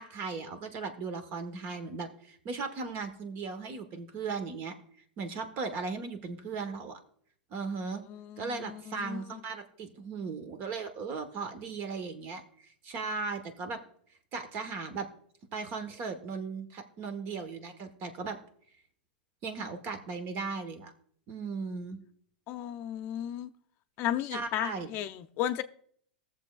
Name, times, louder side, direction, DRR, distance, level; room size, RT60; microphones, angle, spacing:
voice 1, 0.0-4.7 5.2-7.0 7.5-8.0 8.4-13.8 14.3-15.1 15.5-18.4 19.4-20.9 21.3-22.0 24.3-24.9, right 4 dB, 45° right, 1.3 m, -37 dB
voice 2, 8.1-9.4 22.5-23.5 24.0-25.6, left 11 dB, 45° left, 0.6 m, -34 dB
19.5 x 7.1 x 2.4 m
hypercardioid pair, 100°, 5 cm